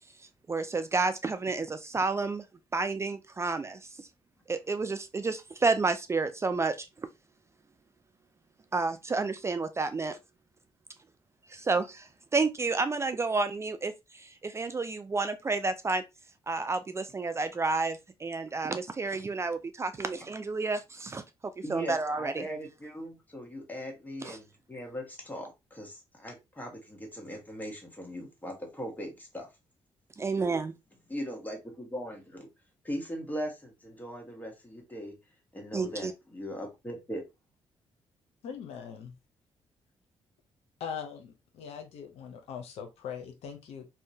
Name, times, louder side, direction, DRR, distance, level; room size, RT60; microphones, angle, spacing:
voice 1, 0.5-2.4 2.7-3.8 4.5-6.9 8.7-10.2 11.5-16.0 16.5-21.2 21.7-22.4 24.2-24.4 30.2-30.7 35.7-36.1, right 3 dB, 25° right, 0.3 m, -30 dB
voice 2, 21.6-29.5 31.1-32.5 32.8-35.2 35.5-37.2, equal, 15° left, 1.1 m, -39 dB
voice 3, 38.4-39.1 40.8-43.8, left 7 dB, 85° left, 0.6 m, -41 dB
2.7 x 2.1 x 2.6 m
cardioid pair, 75°, 10 cm